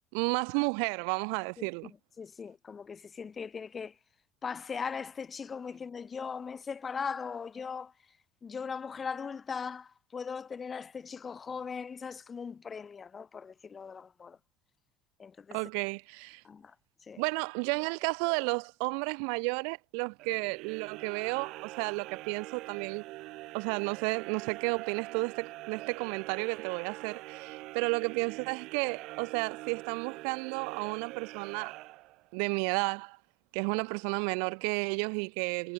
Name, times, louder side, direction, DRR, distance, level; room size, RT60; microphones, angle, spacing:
voice 1, 0.1-1.9 15.5-16.4 17.2-23.0 23.5-31.7 32.3-33.2 33.5-35.7, right 40 dB or more, 80° right, 4.5 m, -32 dB
voice 2, 1.6-3.9 4.4-7.9 8.4-14.4 15.2-15.6 16.4-16.7 17.1-17.2, left 6 dB, 25° left, 7.7 m, -39 dB
sound 1, 20.2-32.5, right 19 dB, 65° right, 1.9 m, -44 dB
cardioid pair, 130°, 0 cm